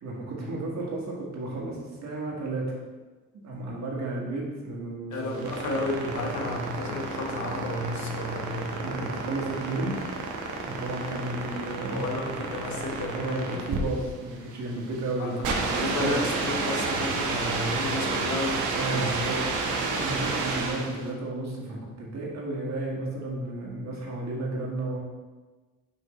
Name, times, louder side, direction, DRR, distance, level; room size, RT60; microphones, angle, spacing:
voice 1, 0.0-2.8 3.4-5.7 8.8-10.0 10.6-12.2 13.1-16.2 18.7-25.0, right 2 dB, 65° right, -3 dB, 1.8 m, -33 dB
voice 2, 5.1-9.2 11.9-13.6 15.2-18.6 18.9-19.2, left 2 dB, 70° left, 1 dB, 1.2 m, -32 dB
sound 1, 5.1-21.0, right 3 dB, 85° right, 1.0 m, -31 dB
5.9 x 5.1 x 3.3 m, 1.3 s
cardioid pair, 90°, 30 cm